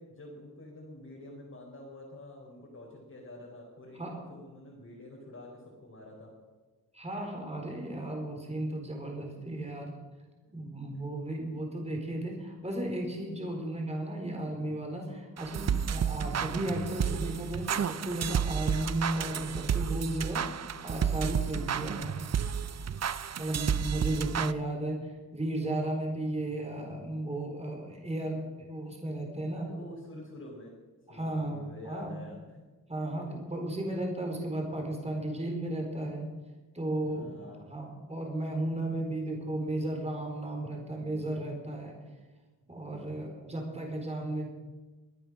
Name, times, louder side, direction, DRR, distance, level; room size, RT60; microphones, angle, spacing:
voice 1, 0.0-6.3 9.4-9.5 10.9-11.0 12.5-12.8 14.4-14.8 23.2-24.8 26.5-27.1 29.5-30.7 31.1-32.6 33.3-33.4 37.0-37.6 40.8-41.3 42.6-43.3, left 1 dB, 45° left, -4 dB, 4.9 m, -49 dB
voice 2, 6.9-10.0 10.5-20.4 20.8-22.2 23.4-29.7 31.1-32.2 32.9-36.3 36.7-41.9 42.7-44.5, right 1 dB, 20° right, 1 dB, 4.2 m, -34 dB
sound 1, 15.4-24.5, right 8 dB, 50° right, 0.6 m, -31 dB
24.0 x 9.1 x 6.4 m, 1.2 s
cardioid pair, 80°, 34 cm